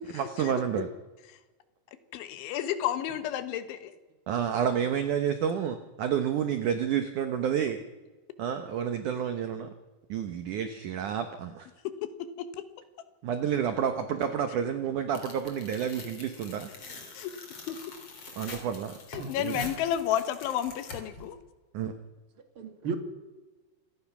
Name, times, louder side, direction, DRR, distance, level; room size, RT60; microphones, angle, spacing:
voice 1, 0.1-0.9 4.3-7.8 8.4-9.7 10.1-11.7 13.2-16.7 18.4-18.9 19.4-19.6 21.7-21.9, right 8 dB, 85° right, 8 dB, 1.7 m, -29 dB
voice 2, 2.1-3.9 9.2-9.3 11.9-12.6 17.2-17.4 17.7-17.8 19.1-21.4, left 10 dB, 85° left, 11 dB, 3.7 m, -31 dB
Tearing, 15.1-21.3, left 3 dB, 35° left, 3.8 m, -45 dB
voice 3, 19.2-19.6 22.6-22.9, right 5 dB, 45° right, 6 dB, 1.9 m, -35 dB
27.0 x 17.5 x 6.0 m, 1.2 s
omnidirectional pair, 5.3 m